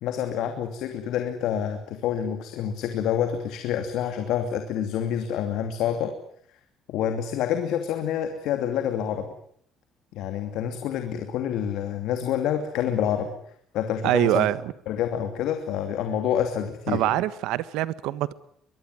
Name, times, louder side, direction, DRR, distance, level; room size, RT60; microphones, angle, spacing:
voice 1, 0.0-6.1 6.9-9.3 10.1-13.3 13.7-14.5 14.9-17.1, left 9 dB, 70° left, 2.7 m, -27 dB
voice 2, 14.0-14.7 16.9-18.3, right 15 dB, 85° right, 1.4 m, -24 dB
23.0 x 22.5 x 9.6 m
cardioid pair, 175°, 0 cm